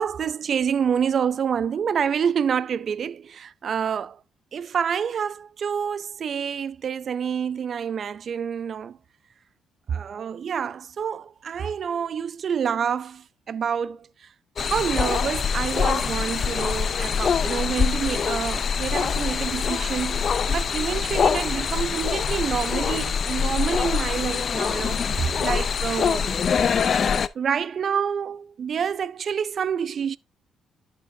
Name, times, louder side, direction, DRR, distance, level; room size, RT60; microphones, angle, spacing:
voice 1, 0.0-4.2 4.5-9.0 9.9-14.1 14.6-26.3 27.4-30.2, right 7 dB, 55° right, 0.4 m, -27 dB
sound 1, 14.6-27.3, left 6 dB, 50° left, 0.5 m, -24 dB
11.0 x 6.0 x 2.7 m
cardioid pair, 90°, 0 cm